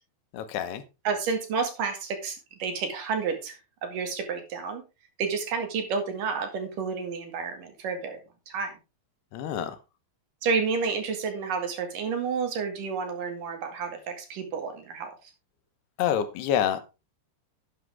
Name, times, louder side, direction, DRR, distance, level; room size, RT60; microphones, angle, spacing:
voice 1, 0.3-0.8 9.3-9.8 16.0-16.8, left 9 dB, 75° left, 11 dB, 2.9 m, -27 dB
voice 2, 1.0-4.8 5.2-8.7 10.4-15.3, right 5 dB, 55° right, 5 dB, 3.4 m, -30 dB
11.5 x 8.9 x 3.5 m, 0.28 s
omnidirectional pair, 4.9 m